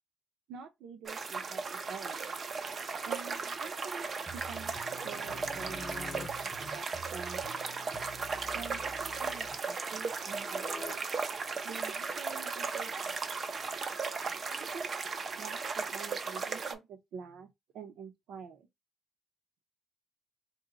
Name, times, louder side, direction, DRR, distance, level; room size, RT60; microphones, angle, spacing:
voice 1, 0.5-2.3 3.0-4.7 5.0-7.7 8.5-11.0 11.6-13.1 14.5-14.9 15.4-17.5 17.7-18.7, right 6 dB, 80° right, 0.7 m, -47 dB
sound 1, 1.1-16.7, right 4 dB, 45° right, 0.5 m, -36 dB
sound 2, 4.2-9.6, right 1 dB, 10° left, 0.8 m, -50 dB
sound 3, 4.5-6.3 9.0-10.9 14.4-14.6, left 5 dB, 45° left, 0.5 m, -49 dB
2.8 x 2.2 x 3.9 m
cardioid pair, 90°, 0 cm